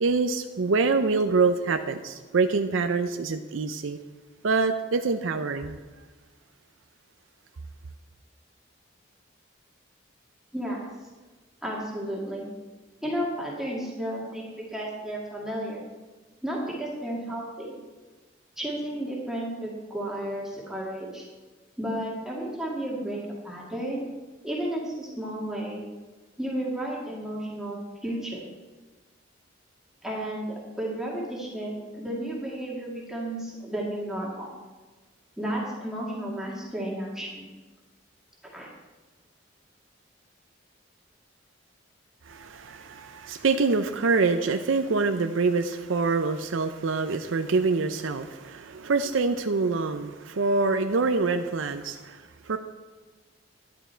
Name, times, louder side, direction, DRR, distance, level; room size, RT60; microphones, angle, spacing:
voice 1, 0.0-4.0 4.4-5.8 42.2-52.6, right 4 dB, 80° right, 7 dB, 0.5 m, -25 dB
voice 2, 11.6-12.5 13.0-14.4 14.7-15.9 16.4-17.8 18.6-21.2 21.8-24.1 24.4-25.8 26.4-28.4 30.0-34.5 35.4-37.5 38.5-38.7, right 1 dB, ahead, -4 dB, 1.9 m, -32 dB
11.0 x 10.5 x 4.5 m, 1.3 s
head